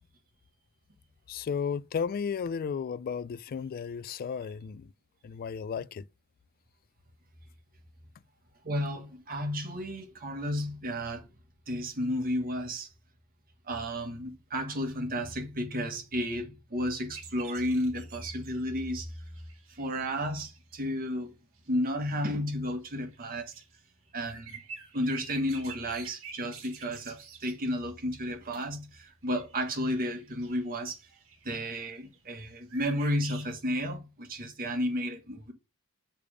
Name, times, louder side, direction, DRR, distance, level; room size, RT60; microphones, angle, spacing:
voice 1, 1.3-4.9 5.2-6.0, left 6 dB, 40° left, 0.3 m, -34 dB
voice 2, 8.6-11.3 11.7-12.9 13.7-19.1 19.8-21.3 21.7-23.5 24.1-24.6 24.9-31.0 31.4-35.5, equal, 40° right, 1.4 m, -32 dB
sound 1, 17.1-20.7 21.6-22.2 22.8-28.0 29.1-32.4 32.7-33.5, right 5 dB, 65° right, 1.5 m, -49 dB
6.8 x 3.4 x 4.9 m
head